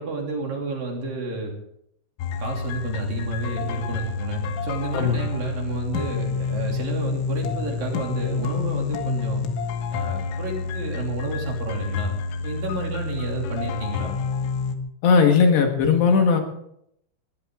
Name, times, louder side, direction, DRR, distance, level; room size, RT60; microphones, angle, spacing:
voice 1, 0.0-1.5 2.4-9.4 9.9-12.1 12.4-14.1, right 3 dB, 50° right, 0 dB, 4.2 m, -31 dB
sound 1, 2.2-14.8, left 5 dB, 85° left, 4.0 m, -28 dB
voice 2, 15.0-16.4, left 5 dB, 65° left, 3 dB, 3.6 m, -17 dB
21.5 x 17.0 x 3.8 m, 0.74 s
omnidirectional pair, 5.7 m